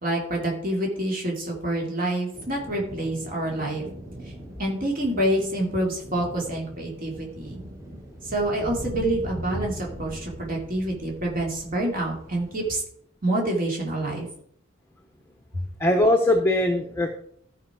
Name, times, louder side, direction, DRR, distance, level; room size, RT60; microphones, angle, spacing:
voice 1, 0.0-3.9 4.6-7.6 8.3-12.8 13.2-14.3 15.5-15.6, right 1 dB, 45° right, -1 dB, 2.6 m, -27 dB
sound 1, 2.3-12.8, equal, 15° right, 1.6 m, -40 dB
voice 2, 15.8-17.1, left 1 dB, 10° left, 3 dB, 0.9 m, -20 dB
13.5 x 5.5 x 4.8 m, 0.66 s
head